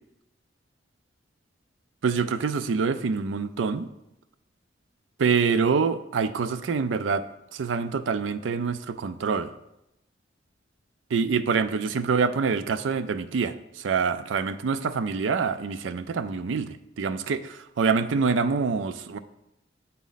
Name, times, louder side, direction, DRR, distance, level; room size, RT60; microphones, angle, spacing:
voice 1, 2.0-3.9 5.2-7.2 7.5-9.5 11.1-19.2, right 5 dB, 90° right, 12 dB, 0.4 m, -26 dB
8.3 x 4.2 x 4.0 m, 0.86 s
head